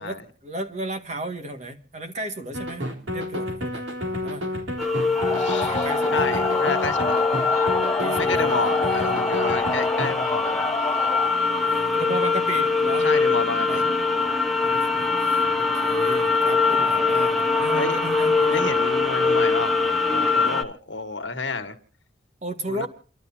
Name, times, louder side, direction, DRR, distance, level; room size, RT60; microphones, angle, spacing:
voice 1, 0.0-3.8 4.2-4.5 5.3-6.4 8.0-9.2 11.6-13.1 13.7-13.9 14.6-18.6 22.4-22.9, right 1 dB, 40° right, 1.9 m, -34 dB
sound 1, 2.5-10.1, left 1 dB, 75° right, 3.5 m, -30 dB
sound 2, 4.8-20.6, left 4 dB, ahead, 1.1 m, -23 dB
sound 3, 5.1-11.3, left 3 dB, 15° left, 0.7 m, -28 dB
voice 2, 5.4-7.2 8.1-10.6 13.0-13.8 17.7-18.0 18.5-19.8 20.1-21.8 22.7-22.9, left 3 dB, 75° left, 1.7 m, -29 dB
29.0 x 12.5 x 2.8 m
head